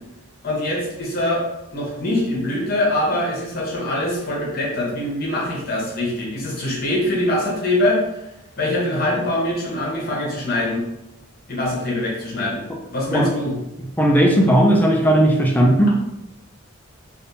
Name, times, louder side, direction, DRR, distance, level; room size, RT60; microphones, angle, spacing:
voice 1, 0.4-1.4 1.7-8.0 8.6-10.8 11.5-12.6 12.9-13.6, left 1 dB, 45° left, -3 dB, 1.0 m, -23 dB
voice 2, 14.0-15.9, right 1 dB, 10° left, 0 dB, 0.4 m, -16 dB
3.4 x 2.6 x 2.7 m, 0.90 s
head